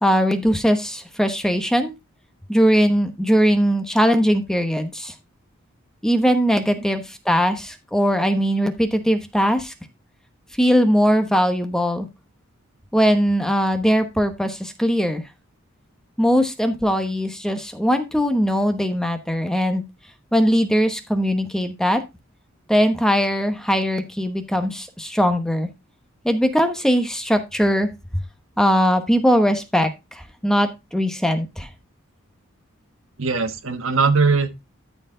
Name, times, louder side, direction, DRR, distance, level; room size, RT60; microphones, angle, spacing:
voice 1, 0.0-1.9 2.5-5.1 6.0-9.7 10.6-12.1 12.9-15.2 16.2-19.8 20.3-22.0 22.7-25.7 26.2-27.9 28.6-31.7, equal, 5° left, 1.0 m, -20 dB
voice 2, 33.2-34.6, right 4 dB, 70° right, 1.3 m, -20 dB
13.0 x 4.6 x 3.8 m
head